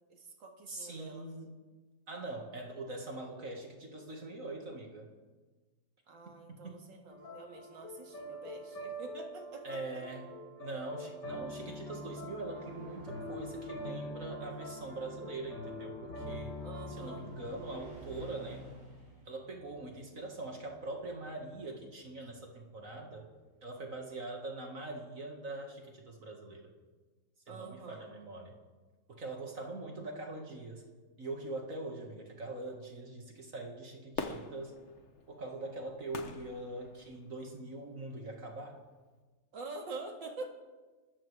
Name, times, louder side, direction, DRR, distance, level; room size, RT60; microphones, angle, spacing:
voice 1, 0.1-1.3 6.1-9.8 16.6-17.3 27.5-28.1 39.5-40.5, right 3 dB, 85° right, 2 dB, 2.6 m, -46 dB
voice 2, 0.7-1.5 2.1-5.1 6.3-6.8 9.6-10.3 10.6-16.6 16.9-18.7 19.3-23.3 23.6-26.7 27.5-28.6 29.1-30.8 31.2-34.7 35.3-38.8, right 2 dB, 45° right, 1 dB, 2.4 m, -43 dB
sound 1, 7.1-17.9, equal, 85° left, 5.3 m, -44 dB
sound 2, 12.5-23.5, right 2 dB, 30° right, 5.5 m, -56 dB
Fireworks, 34.1-37.5 38.0-38.1, left 4 dB, 45° left, 1.3 m, -43 dB
27.5 x 14.0 x 3.5 m, 1.3 s
omnidirectional pair, 2.0 m